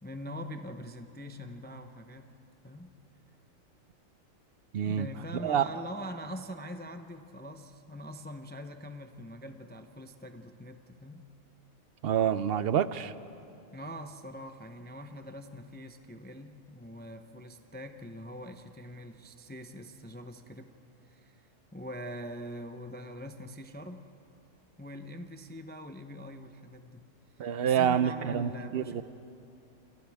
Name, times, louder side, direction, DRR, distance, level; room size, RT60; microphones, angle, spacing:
voice 1, 0.0-2.3 2.6-2.9 4.9-11.2 13.7-20.7 21.0-21.4 21.7-24.0 24.8-27.1 27.6-29.0, equal, 10° left, 6 dB, 0.5 m, -43 dB
voice 2, 4.7-5.1 5.4-5.6 12.0-13.1 27.4-29.0, right 9 dB, 60° right, 14 dB, 0.7 m, -27 dB
29.0 x 28.0 x 3.5 m, 2.8 s
omnidirectional pair, 1.3 m